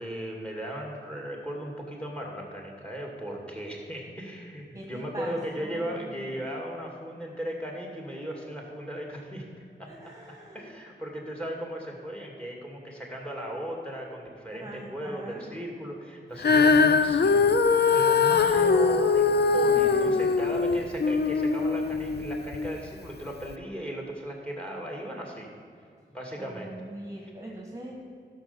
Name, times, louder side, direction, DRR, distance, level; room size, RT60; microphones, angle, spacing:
voice 1, 0.0-9.5 9.8-17.5 17.9-25.5 26.1-26.7, equal, 5° left, 0 dB, 2.4 m, -36 dB
voice 2, 4.7-6.3 9.9-10.7 14.5-15.6 19.7-20.2 26.4-27.9, right 1 dB, 15° right, -2 dB, 1.8 m, -42 dB
Female singing, 16.4-22.7 23.4-23.5, left 4 dB, 60° left, 0.5 m, -22 dB
12.0 x 5.8 x 7.0 m, 2.3 s
cardioid pair, 60°, 19 cm